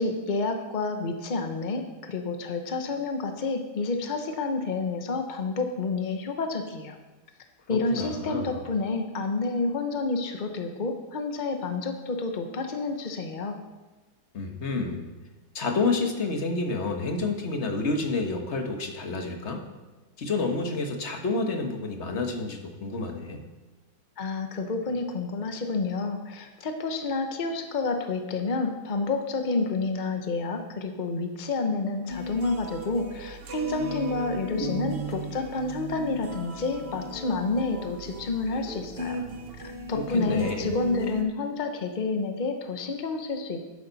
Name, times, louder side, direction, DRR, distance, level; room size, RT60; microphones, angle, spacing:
voice 1, 0.0-7.0 7.7-13.6 24.2-39.2 39.6-43.6, left 3 dB, 75° left, 5 dB, 0.4 m, -29 dB
voice 2, 7.7-8.6 14.3-15.1 15.5-19.6 20.2-23.4 39.9-40.7, left 3 dB, 40° left, 4 dB, 1.2 m, -29 dB
sound 1, 32.1-41.2, right 1 dB, 90° right, 0.5 m, -36 dB
11.5 x 10.0 x 4.0 m, 1.2 s
omnidirectional pair, 2.2 m